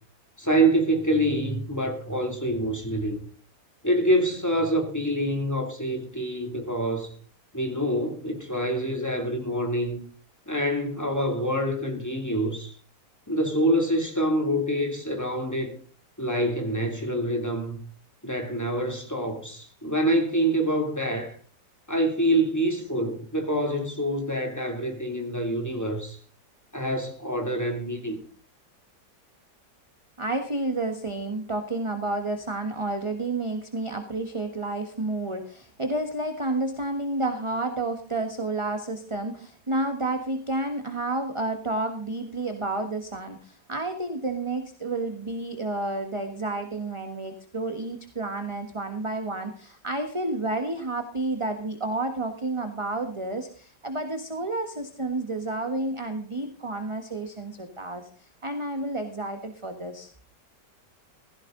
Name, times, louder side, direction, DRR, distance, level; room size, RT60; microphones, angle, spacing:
voice 1, 0.4-3.2 3.8-7.1 7.5-10.0 10.5-12.7 13.3-15.8 16.2-17.8 18.2-21.4 21.9-26.2 26.7-28.2, right 1 dB, 10° left, 2.7 m, -26 dB
voice 2, 30.2-60.1, right 2 dB, 20° right, 1.4 m, -30 dB
16.0 x 15.0 x 3.9 m
omnidirectional pair, 1.8 m